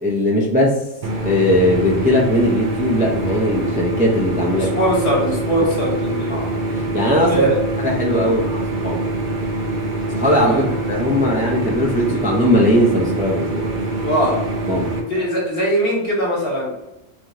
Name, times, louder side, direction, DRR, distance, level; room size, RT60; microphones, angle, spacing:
voice 1, 0.0-0.9 1.2-4.7 6.3-7.5 7.8-9.0 10.1-13.7 14.7-14.9, left 1 dB, 10° right, -3 dB, 0.4 m, -19 dB
sound 1, 1.0-15.0, right 2 dB, 50° right, 0.7 m, -24 dB
voice 2, 4.5-6.4 7.3-7.6 8.2-8.3 10.5-10.7 14.0-14.4 15.1-16.7, equal, 50° left, -3 dB, 1.4 m, -21 dB
3.4 x 2.9 x 3.7 m, 0.92 s
omnidirectional pair, 1.3 m